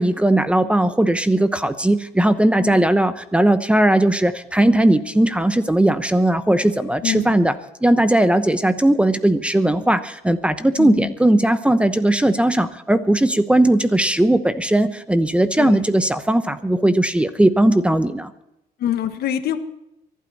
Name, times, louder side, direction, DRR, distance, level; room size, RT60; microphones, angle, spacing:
voice 1, 0.0-7.5 7.8-18.3, right 1 dB, 5° right, 11 dB, 0.9 m, -18 dB
voice 2, 7.0-7.4 10.8-11.1 15.6-15.8 18.8-19.6, left 10 dB, 70° left, 9 dB, 1.5 m, -25 dB
24.0 x 12.0 x 4.2 m, 0.84 s
cardioid pair, 110°, 17 cm